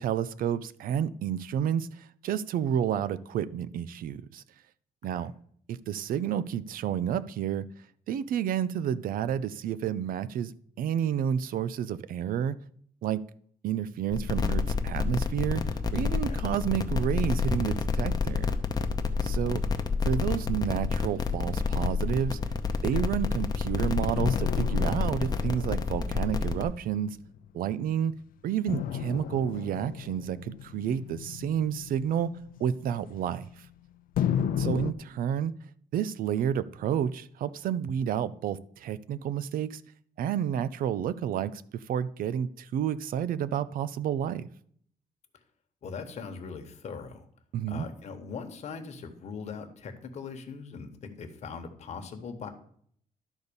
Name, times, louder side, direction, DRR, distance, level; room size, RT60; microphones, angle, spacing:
voice 1, 0.0-4.4 5.0-5.3 5.7-7.7 8.1-10.5 10.8-12.6 13.0-13.2 13.6-15.6 15.9-18.5 19.2-19.6 20.0-22.4 22.8-27.2 27.5-28.1 28.4-32.3 32.6-33.5 34.6-35.5 35.9-39.8 40.2-44.5 47.5-47.9, right 9 dB, 70° right, 0.5 m, -30 dB
sound 1, 14.1-26.6, left 5 dB, 25° left, 0.7 m, -28 dB
sound 2, 24.2-27.8 28.7-33.7 34.2-34.9, left 9 dB, 70° left, 0.5 m, -34 dB
voice 2, 45.8-47.3 47.7-52.5, left 5 dB, 50° left, 1.2 m, -40 dB
11.5 x 4.1 x 6.9 m
cardioid pair, 160°, 15 cm